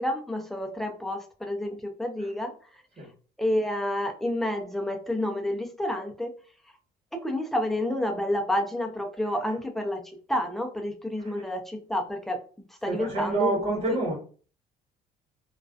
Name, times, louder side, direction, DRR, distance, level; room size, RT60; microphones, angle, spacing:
voice 1, 0.0-2.8 3.4-6.3 7.1-12.4 12.7-14.0, left 1 dB, ahead, 0.4 m, -29 dB
voice 2, 12.9-14.1, right 3 dB, 35° right, 1.3 m, -27 dB
2.4 x 2.2 x 2.3 m
cardioid pair, 110°, 17 cm